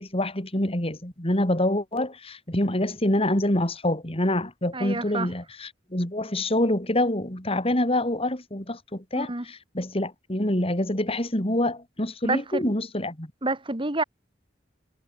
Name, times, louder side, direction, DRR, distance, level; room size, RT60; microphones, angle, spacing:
voice 1, 0.0-13.3, left 1 dB, 35° left, 4.3 m, -26 dB
voice 2, 4.7-5.3 9.1-9.4 12.2-12.7 13.4-14.0, right 2 dB, 30° right, 2.5 m, -28 dB
head